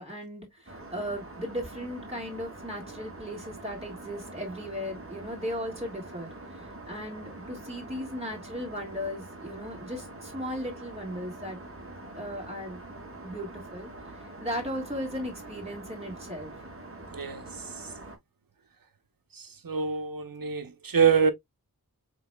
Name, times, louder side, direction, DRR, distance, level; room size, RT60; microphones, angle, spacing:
voice 1, 0.0-6.3 6.9-11.6 12.1-12.8 13.2-13.9 14.4-16.5, equal, 15° right, 2.9 m, -36 dB
Aircraft, 0.7-18.2, right 2 dB, 35° right, 2.1 m, -44 dB
voice 2, 17.1-17.4 19.6-21.3, right 6 dB, 70° right, 1.0 m, -25 dB
5.3 x 3.9 x 2.4 m
wide cardioid pair, 50°, 36 cm